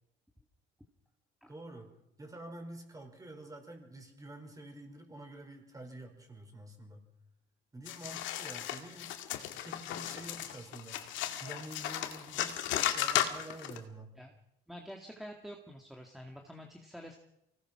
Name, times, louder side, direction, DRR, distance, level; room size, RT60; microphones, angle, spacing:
voice 1, 1.5-7.0 7.7-9.1 9.6-11.0 11.4-14.1, right 1 dB, 20° right, 4 dB, 5.2 m, -48 dB
sound 1, 7.9-13.8, left 12 dB, 85° left, 2.1 m, -35 dB
voice 2, 14.7-17.2, equal, ahead, 2 dB, 2.1 m, -47 dB
24.5 x 18.5 x 6.1 m, 0.83 s
cardioid pair, 115°, 19 cm